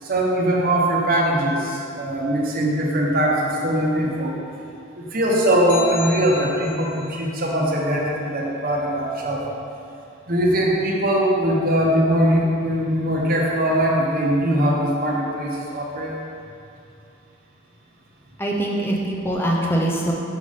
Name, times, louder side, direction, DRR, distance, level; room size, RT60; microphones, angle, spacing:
voice 1, 0.0-4.4 4.9-9.4 10.3-16.2, right 1 dB, 45° right, -2 dB, 0.9 m, -21 dB
sound 1, 5.7-7.1, left 6 dB, 90° left, 0.9 m, -34 dB
voice 2, 18.4-20.1, right 1 dB, 10° left, -2 dB, 0.6 m, -23 dB
6.4 x 4.9 x 4.1 m, 2.6 s
head